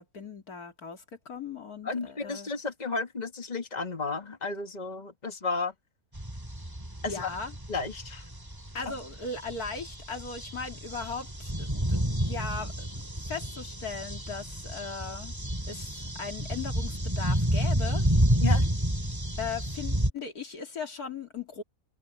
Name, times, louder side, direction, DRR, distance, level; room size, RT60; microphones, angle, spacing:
voice 1, 0.0-2.5 7.1-7.5 8.7-12.7 13.2-15.3 15.7-18.3 19.4-21.6, left 5 dB, 80° left, 3.1 m, -38 dB
voice 2, 1.8-5.7 7.0-7.3 7.7-8.2 8.9-9.0 18.4-18.7, left 4 dB, 30° left, 2.3 m, -33 dB
sound 1, 6.1-20.1, right 1 dB, 15° right, 2.6 m, -30 dB
omnidirectional pair, 1.6 m